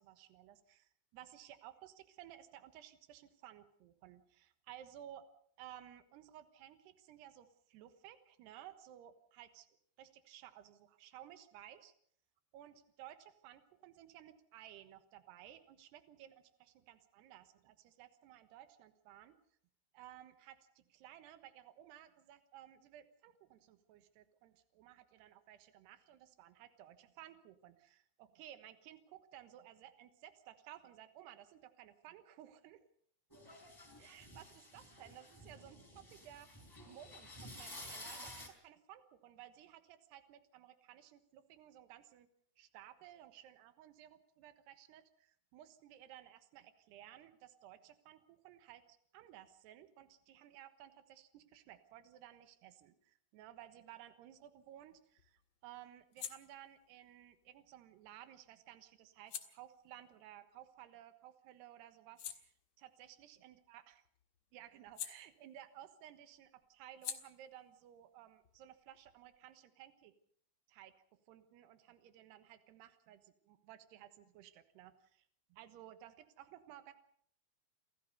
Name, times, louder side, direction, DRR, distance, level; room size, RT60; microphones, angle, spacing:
voice 1, 0.0-5.2 5.6-9.7 10.0-11.9 12.5-19.3 19.9-32.8 34.0-36.6 36.9-42.3 42.6-64.0 64.5-70.1 70.7-70.9 71.3-75.3 75.5-76.9, right 12 dB, 75° right, 10 dB, 3.3 m, -57 dB
sound 1, 33.3-38.5, left 1 dB, 5° left, 3.4 m, -52 dB
sound 2, 54.4-61.3 61.7-65.9 66.2-69.6, left 9 dB, 55° left, 2.2 m, -53 dB
28.5 x 14.5 x 6.8 m, 0.63 s
omnidirectional pair, 5.0 m